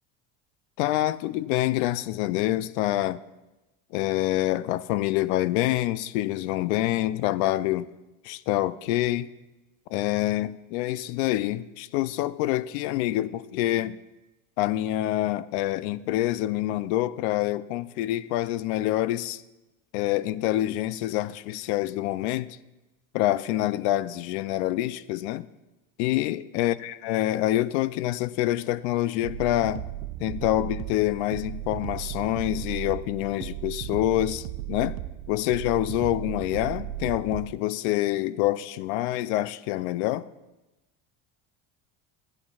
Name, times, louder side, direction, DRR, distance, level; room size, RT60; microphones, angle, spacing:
voice 1, 0.8-3.2 3.9-7.9 8.2-9.3 9.9-14.0 14.6-19.4 19.9-22.6 23.1-25.5 26.0-29.9 30.2-35.0 35.3-40.3, left 15 dB, 90° left, 0.5 m, -26 dB
sound 1, 29.2-37.6, right 14 dB, 85° right, 0.5 m, -36 dB
14.0 x 8.9 x 2.3 m
cardioid pair, 150°, 33 cm